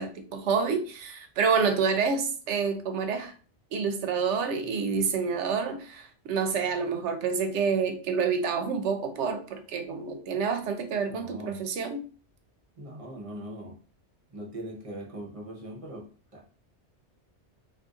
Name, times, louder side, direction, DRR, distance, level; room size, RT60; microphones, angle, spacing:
voice 1, 0.0-3.3 3.7-12.0, right 5 dB, 75° right, 7 dB, 0.9 m, -28 dB
voice 2, 11.1-11.6 12.8-13.8 14.3-16.5, equal, 35° right, -1 dB, 0.7 m, -41 dB
2.5 x 2.5 x 3.6 m, 0.39 s
omnidirectional pair, 1.2 m